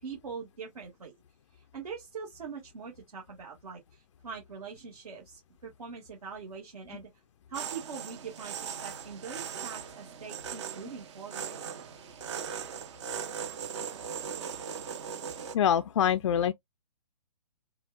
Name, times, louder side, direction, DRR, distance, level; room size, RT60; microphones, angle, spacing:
voice 1, 0.0-1.1 1.5-7.1 7.5-11.6, right 6 dB, 65° right, 1.9 m, -43 dB
sound 1, 7.5-15.6, right 7 dB, 45° right, 0.8 m, -39 dB
voice 2, 15.5-16.5, left 9 dB, 50° left, 0.4 m, -25 dB
6.8 x 2.3 x 2.3 m
figure-of-eight pair, 125°, 20 cm